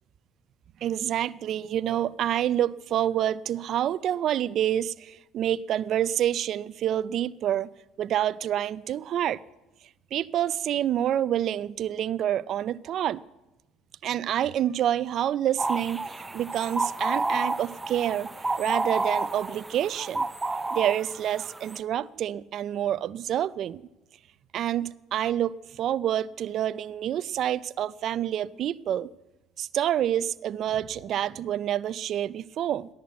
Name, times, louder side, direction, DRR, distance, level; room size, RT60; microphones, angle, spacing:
voice 1, 0.8-7.7 8.0-9.4 10.1-13.2 14.0-18.3 18.6-20.3 20.7-23.8 24.5-29.1 29.6-32.9, right 11 dB, 60° right, 0.4 m, -27 dB
sound 1, 15.6-21.8, right 2 dB, 15° right, 0.6 m, -30 dB
14.5 x 11.0 x 8.2 m
supercardioid pair, 90°, 0 cm